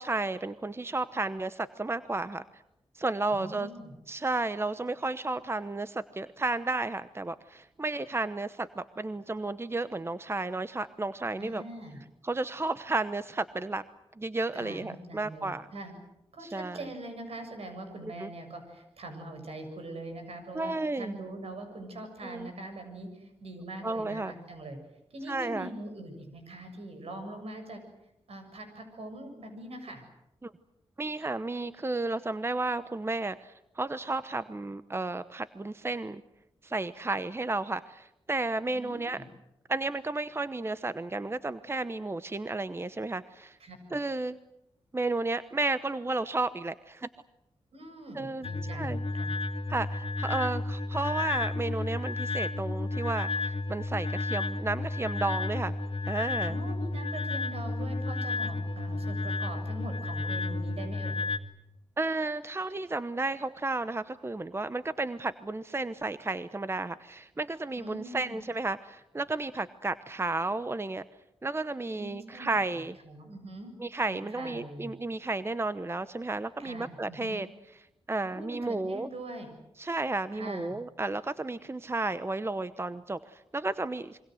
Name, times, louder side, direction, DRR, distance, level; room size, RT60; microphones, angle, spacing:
voice 1, 0.0-2.6 2.9-3.7 4.1-11.6 12.2-13.8 14.2-15.7 16.4-16.9 18.2-18.3 20.5-21.2 22.2-22.5 23.8-24.3 25.3-25.7 30.4-30.5 31.0-36.2 36.6-39.2 39.7-43.6 43.9-44.4 44.9-47.1 48.1-49.0 49.7-55.7 56.1-56.6 62.0-71.0 71.4-73.0 73.8-77.5 78.1-79.1 79.8-84.2, right 2 dB, 25° right, 13 dB, 0.9 m, -32 dB
voice 2, 3.3-3.9 11.4-12.0 14.5-16.0 16.3-24.8 25.1-27.8 28.3-30.0 38.7-39.3 43.6-43.8 47.7-49.3 56.4-61.2 67.8-68.4 71.9-73.7 74.1-74.9 76.6-77.4 78.2-79.5 80.3-80.8, right 1 dB, 70° right, 6 dB, 7.4 m, -43 dB
sound 1, 48.4-61.4, left 2 dB, 60° left, 2.2 m, -32 dB
27.0 x 23.5 x 7.9 m, 0.86 s
cardioid pair, 65°, 11 cm